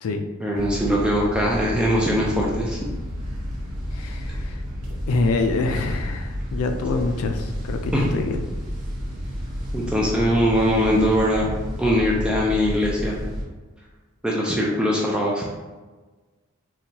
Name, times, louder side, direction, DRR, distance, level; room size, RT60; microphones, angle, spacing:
voice 1, 0.4-2.9 7.9-8.1 9.7-11.5 11.8-13.2 14.2-15.5, equal, 5° right, -4 dB, 0.3 m, -21 dB
sound 1, 0.5-13.4, equal, 90° right, 0.8 m, -31 dB
voice 2, 3.9-4.6 5.1-8.4, left 3 dB, 75° left, 6 dB, 0.4 m, -25 dB
4.0 x 2.2 x 2.8 m, 1.3 s
head